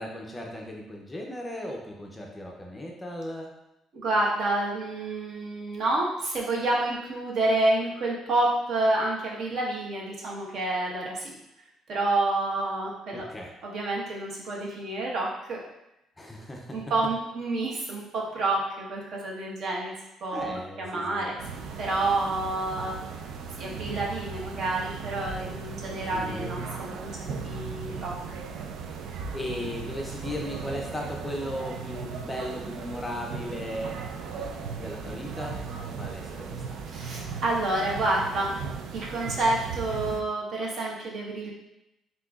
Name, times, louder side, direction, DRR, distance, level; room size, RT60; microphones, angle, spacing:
voice 1, 0.0-3.5 13.1-13.5 16.2-16.8 20.3-21.3 26.1-26.5 29.3-34.0 34.3-35.6 36.0-36.8, left 1 dB, 10° left, 0 dB, 0.5 m, -36 dB
voice 2, 3.9-11.3 11.9-13.3 13.6-15.6 16.7-19.9 20.2-21.4 21.8-23.0 23.6-27.2 27.4-28.4 36.9-38.6 38.9-41.5, right 2 dB, 55° right, -3 dB, 1.1 m, -28 dB
sound 1, 21.4-40.2, right 5 dB, 75° right, 0.4 m, -37 dB
7.5 x 2.7 x 2.4 m, 0.89 s
cardioid pair, 155°, 0 cm